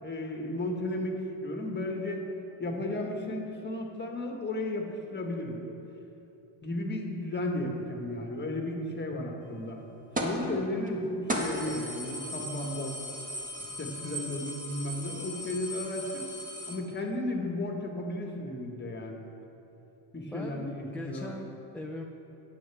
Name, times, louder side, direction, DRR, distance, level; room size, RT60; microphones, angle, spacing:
voice 1, 0.0-2.2 2.6-5.6 6.6-9.8 10.2-13.0 13.6-16.3 16.7-19.2 20.1-21.3, left 1 dB, 20° left, 1 dB, 1.7 m, -34 dB
sound 1, 10.2-10.4 10.9-11.0 11.3-16.7, equal, 15° right, 1.6 m, -36 dB
voice 2, 20.3-22.0, left 1 dB, 5° left, 1 dB, 0.6 m, -41 dB
12.5 x 9.7 x 3.6 m, 3.0 s
cardioid pair, 95°, 48 cm